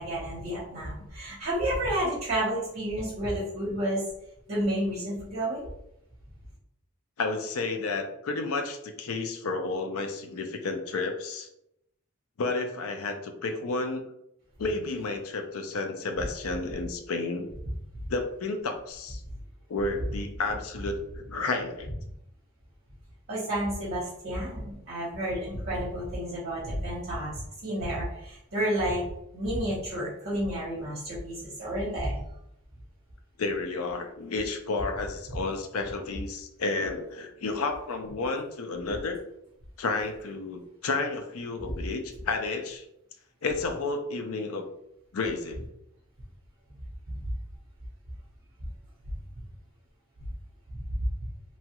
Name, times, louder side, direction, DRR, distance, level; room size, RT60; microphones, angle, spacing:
voice 1, 0.0-4.0 4.5-5.7 23.3-29.0 29.3-32.2 47.2-47.3 50.9-51.0, right 1 dB, 45° right, -7 dB, 0.9 m, -31 dB
voice 2, 7.2-11.5 12.4-14.1 14.6-17.5 18.1-19.2 19.7-21.9 33.4-39.2 39.8-42.8 43.4-44.7 45.1-45.7, left 3 dB, 70° left, 5 dB, 0.5 m, -31 dB
3.0 x 2.3 x 2.9 m, 0.80 s
head